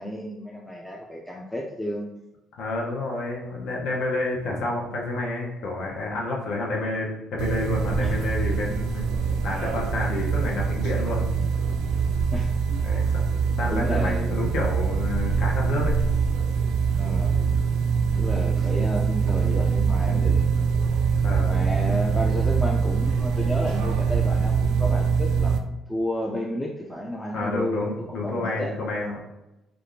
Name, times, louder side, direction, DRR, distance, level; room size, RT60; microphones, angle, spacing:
voice 1, 0.0-2.1 8.0-8.2 12.3-12.5 13.7-14.5 17.0-17.4 18.1-20.4 21.4-25.6 25.9-28.7, equal, 5° left, -2 dB, 0.3 m, -31 dB
voice 2, 2.6-9.1 9.4-11.3 12.8-13.2 13.6-15.9 21.2-21.5 27.3-29.2, left 2 dB, 65° left, -2 dB, 0.8 m, -29 dB
sound 1, 7.4-25.6, right 6 dB, 85° right, 0.3 m, -23 dB
3.4 x 2.4 x 2.6 m, 0.96 s
cardioid pair, 125°, 0 cm